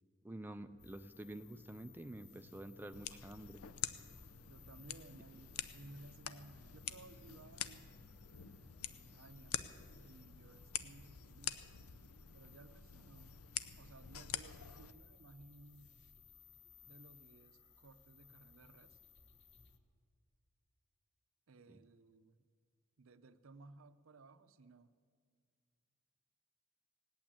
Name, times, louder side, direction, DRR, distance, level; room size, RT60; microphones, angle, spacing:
voice 1, 0.2-3.6, right 1 dB, 10° right, 8 dB, 0.3 m, -49 dB
sound 1, 0.6-9.1, left 2 dB, 40° left, 0.6 m, -64 dB
sound 2, 0.8-19.8, left 6 dB, 55° left, 1.0 m, -63 dB
sound 3, 2.9-14.9, left 10 dB, 85° left, 0.6 m, -47 dB
voice 2, 4.4-8.0 8.8-9.7 10.0-11.6 12.3-13.4 13.8-16.0 16.8-19.0 21.5-22.4 23.0-24.9, right 2 dB, 65° right, 13 dB, 0.6 m, -59 dB
18.5 x 8.7 x 8.7 m, 2.1 s
head